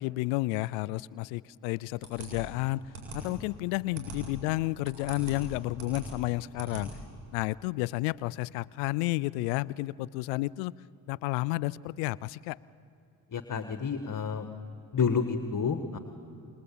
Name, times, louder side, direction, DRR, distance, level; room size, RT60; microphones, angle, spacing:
voice 1, 0.0-2.8 3.1-6.9 7.3-10.7 11.1-12.6, left 20 dB, 85° left, 22 dB, 0.6 m, -31 dB
Click Computer, 2.0-7.3, right 3 dB, 90° right, 7.6 m, -43 dB
voice 2, 13.3-14.5 14.9-16.0, left 6 dB, 40° left, 8 dB, 1.8 m, -29 dB
27.5 x 21.5 x 8.6 m, 2.9 s
hypercardioid pair, 55°, 46 cm